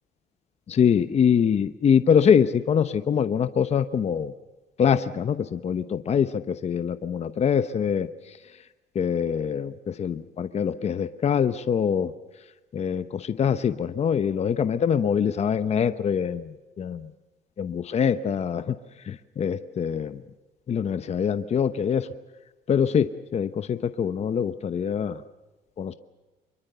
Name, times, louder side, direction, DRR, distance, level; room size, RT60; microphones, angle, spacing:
voice 1, 0.7-4.3 4.8-8.1 8.9-12.1 12.7-17.1 17.6-18.7 19.1-20.2 20.7-22.1 22.7-25.2 25.8-25.9, left 7 dB, 40° left, 11 dB, 1.0 m, -24 dB
25.0 x 22.5 x 6.9 m, 1.1 s
cardioid pair, 110°, 17 cm